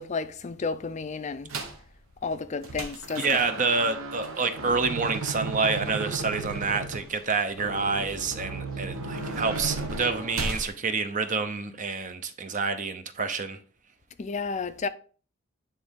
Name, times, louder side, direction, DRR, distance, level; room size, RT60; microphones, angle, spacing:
voice 1, 0.0-1.5 2.2-3.4 14.2-14.9, left 4 dB, 35° left, 0.4 m, -32 dB
sound 1, 1.5-1.8 2.3-10.7, right 3 dB, 80° right, 1.1 m, -35 dB
voice 2, 3.2-13.6, right 4 dB, 40° right, 0.7 m, -28 dB
9.4 x 3.7 x 3.6 m
head